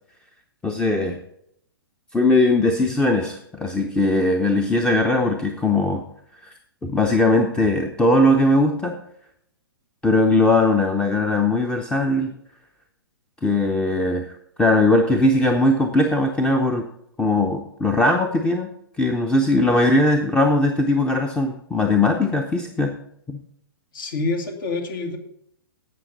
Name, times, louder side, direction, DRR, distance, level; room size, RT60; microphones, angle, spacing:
voice 1, 0.6-1.2 2.1-6.0 6.4-6.5 6.8-9.0 10.0-12.3 13.4-16.9 17.2-18.7 19.0-22.9 23.3-23.4, left 2 dB, 5° left, 5 dB, 0.7 m, -19 dB
voice 2, 23.9-25.2, left 3 dB, 60° left, 5 dB, 2.2 m, -27 dB
16.0 x 5.8 x 4.2 m, 0.72 s
figure-of-eight pair, 120°, 13 cm